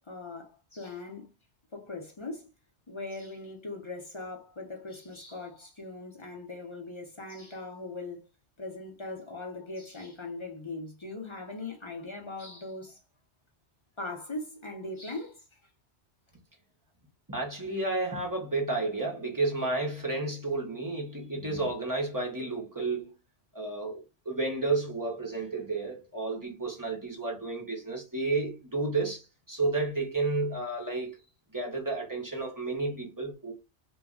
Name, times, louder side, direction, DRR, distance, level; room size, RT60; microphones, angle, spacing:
voice 1, 0.1-1.3 1.7-2.5 2.9-8.3 8.6-13.0 14.0-15.4, left 2 dB, 35° left, 0.5 m, -40 dB
voice 2, 17.3-23.1 23.5-31.2 31.5-33.5, right 3 dB, 25° right, 0.5 m, -31 dB
2.3 x 2.1 x 3.6 m
omnidirectional pair, 1.1 m